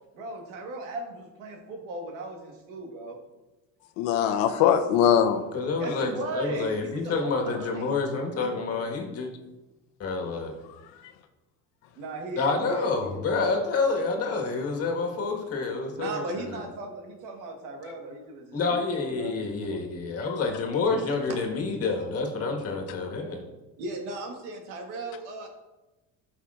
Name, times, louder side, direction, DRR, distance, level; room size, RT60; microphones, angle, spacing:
voice 1, 0.1-3.2 5.7-8.0 8.4-8.6 11.9-13.6 14.1-14.2 16.0-19.9 21.3-21.4 23.8-25.5, right 2 dB, 90° right, 2 dB, 1.5 m, -37 dB
voice 2, 4.0-5.4 5.9-6.1 20.3-20.4, left 9 dB, 85° left, 7 dB, 0.8 m, -22 dB
voice 3, 5.5-9.3 10.0-10.5 12.4-16.6 18.5-23.4, left 4 dB, 45° left, 1 dB, 1.6 m, -28 dB
11.5 x 5.7 x 2.5 m, 1.1 s
supercardioid pair, 110°, 34 cm